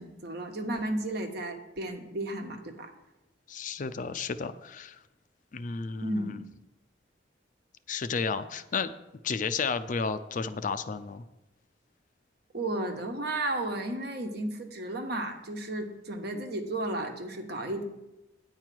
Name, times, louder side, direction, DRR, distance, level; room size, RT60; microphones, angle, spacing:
voice 1, 0.0-2.9 6.0-6.4 12.5-17.8, right 1 dB, 60° right, 4 dB, 1.2 m, -33 dB
voice 2, 3.5-5.0 5.5-6.4 7.9-8.9 9.2-11.2, left 5 dB, 45° left, 12 dB, 0.4 m, -32 dB
9.4 x 4.6 x 7.6 m, 0.97 s
head